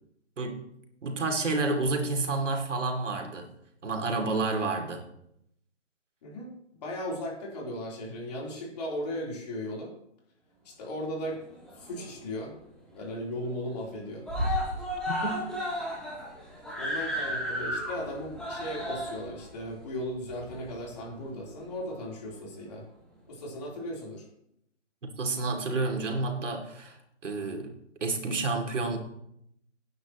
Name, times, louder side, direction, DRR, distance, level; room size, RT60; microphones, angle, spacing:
voice 1, 1.0-3.5 3.8-5.0 15.1-15.4 25.0-29.0, right 3 dB, 80° right, 3 dB, 2.8 m, -30 dB
voice 2, 6.2-6.5 6.8-9.9 10.6-11.4 11.8-12.5 12.9-14.3 16.8-22.9 23.3-24.2, equal, 35° left, -2 dB, 3.7 m, -36 dB
Screaming, 11.4-12.3 12.6-12.7 13.0-13.1 13.4-13.9 14.2-21.1 21.9-22.0, equal, ahead, 1.8 m, -33 dB
18.0 x 9.6 x 3.1 m, 0.77 s
hypercardioid pair, 170°, 36 cm